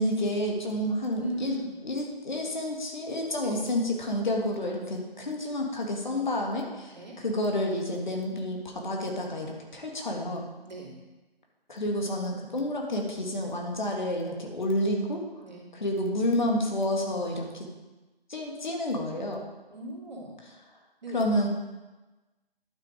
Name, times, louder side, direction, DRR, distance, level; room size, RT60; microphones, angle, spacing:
voice 1, 0.0-1.6 1.8-10.5 11.7-15.2 15.8-17.7 18.3-19.4 21.1-21.5, left 1 dB, 50° left, 0 dB, 2.0 m, -29 dB
voice 2, 1.1-1.8 3.4-3.6 6.9-7.2 10.6-11.0 15.4-15.6 19.7-20.3 21.0-21.3, right 2 dB, 45° right, -4 dB, 2.8 m, -38 dB
11.0 x 6.3 x 5.1 m, 1.2 s
figure-of-eight pair, 150°, 30 cm